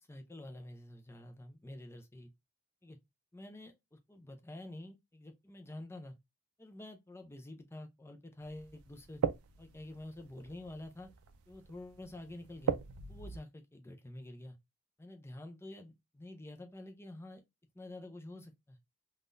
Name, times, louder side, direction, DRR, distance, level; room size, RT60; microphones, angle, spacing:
voice 1, 0.0-2.3 2.8-3.0 3.3-6.2 6.6-9.2 9.6-11.1 11.5-12.8 13.1-14.6 15.0-17.4 17.7-18.8, left 1 dB, 10° left, 0.4 m, -48 dB
sound 1, 8.4-13.4, right 7 dB, 70° right, 0.4 m, -40 dB
3.6 x 2.3 x 2.5 m
head